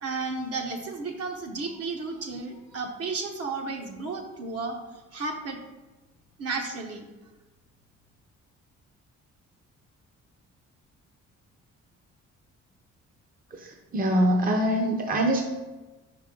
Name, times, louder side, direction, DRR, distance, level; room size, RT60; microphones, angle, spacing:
voice 1, 0.0-4.8 5.1-5.6 6.4-7.0, right 3 dB, 55° right, 2 dB, 1.0 m, -33 dB
voice 2, 13.5-15.4, equal, 30° right, 2 dB, 0.7 m, -24 dB
5.2 x 5.0 x 3.8 m, 1.2 s
cardioid pair, 90°, 30 cm